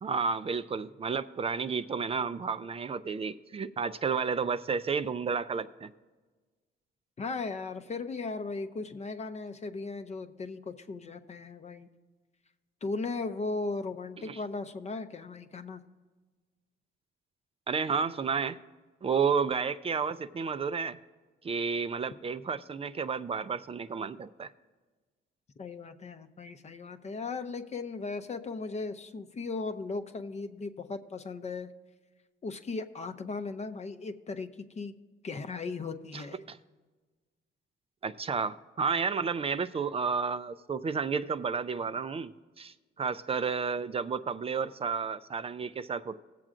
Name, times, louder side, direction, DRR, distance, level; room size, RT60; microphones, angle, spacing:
voice 1, 0.0-5.9 14.2-14.4 17.7-18.6 19.0-21.0 21.4-24.5 36.1-36.6 38.0-46.2, right 5 dB, 30° right, 12 dB, 0.4 m, -31 dB
voice 2, 7.2-11.9 12.8-15.8 25.6-31.7 32.4-34.9 35.2-36.4, left 3 dB, 35° left, 9 dB, 0.6 m, -37 dB
19.5 x 7.5 x 2.5 m, 1.3 s
cardioid pair, 90°, 20 cm